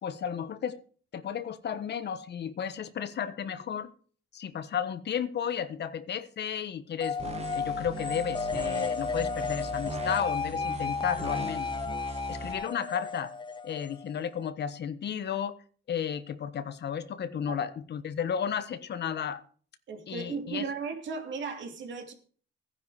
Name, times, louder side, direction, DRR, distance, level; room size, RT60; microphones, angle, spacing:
voice 1, 0.0-0.8 1.1-3.9 4.3-11.8 12.3-13.3 13.6-15.6 15.9-19.4 20.1-20.6, left 8 dB, 60° left, 1.3 m, -33 dB
sound 1, 7.0-14.5, left 5 dB, 25° left, 0.7 m, -33 dB
sound 2, 7.2-12.5, right 4 dB, 30° right, 1.8 m, -40 dB
voice 2, 19.9-22.1, right 5 dB, 70° right, 2.8 m, -36 dB
15.0 x 10.0 x 4.9 m
cardioid pair, 90°, 20 cm